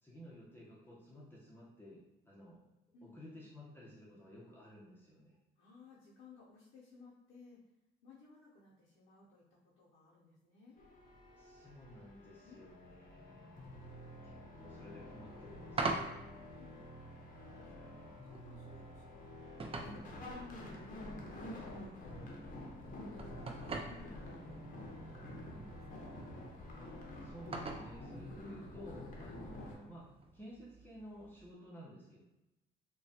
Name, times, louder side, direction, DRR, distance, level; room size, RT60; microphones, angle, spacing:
voice 1, 0.0-2.6 3.0-5.3 11.4-16.0 17.3-17.9 26.8-26.9 27.2-32.2, equal, 10° left, -7 dB, 0.8 m, -54 dB
voice 2, 2.9-3.4 5.6-7.6 8.0-10.8 12.4-12.8 13.2-13.4 16.2-16.7 17.4-20.8 21.3-22.3 22.9-26.1, left 3 dB, 85° left, -6 dB, 0.7 m, -61 dB
sound 1, 10.8-29.7, left 1 dB, 45° left, 0.7 m, -49 dB
sound 2, 15.2-31.5, right 3 dB, 30° right, 0.4 m, -46 dB
3.1 x 2.2 x 2.7 m, 0.94 s
cardioid pair, 90°, 20 cm